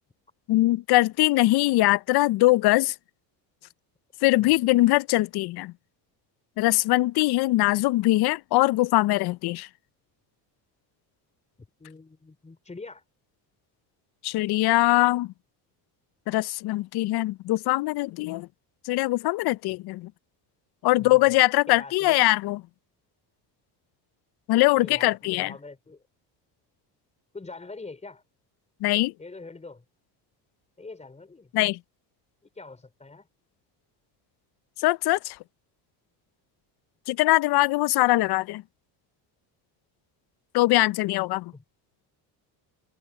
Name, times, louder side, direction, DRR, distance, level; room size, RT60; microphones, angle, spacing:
voice 1, 0.5-2.9 4.2-5.7 6.6-9.7 14.2-15.3 16.3-18.5 18.8-20.1 20.8-22.6 24.5-25.5 28.8-29.1 31.5-31.8 34.8-35.4 37.1-38.6 40.5-41.5, left 19 dB, 60° left, 0.6 m, -22 dB
voice 2, 11.6-13.0 20.9-21.3 21.7-22.2 24.7-26.0 27.3-28.2 29.2-29.8 30.8-31.5 32.4-33.3 41.5-41.6, left 3 dB, 15° left, 4.4 m, -44 dB
open air
cardioid pair, 130°, 44 cm